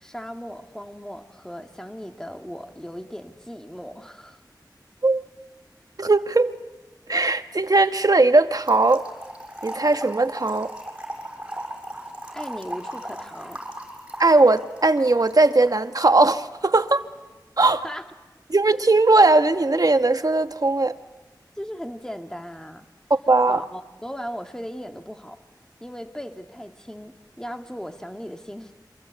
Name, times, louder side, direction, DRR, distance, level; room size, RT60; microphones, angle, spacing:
voice 1, 0.0-4.4 12.3-13.6 17.8-18.0 21.6-22.9 23.5-25.4 25.8-28.7, equal, 10° left, 2.3 m, -37 dB
voice 2, 6.0-6.5 7.1-9.1 9.6-10.7 14.2-17.0 17.6-17.9 18.5-20.9 23.1-23.6, right 2 dB, 55° right, 1.2 m, -19 dB
Trickle dribble / Fill (with liquid), 8.7-15.8, right 1 dB, 15° right, 6.4 m, -37 dB
28.0 x 25.0 x 8.2 m
wide cardioid pair, 50°, 8 cm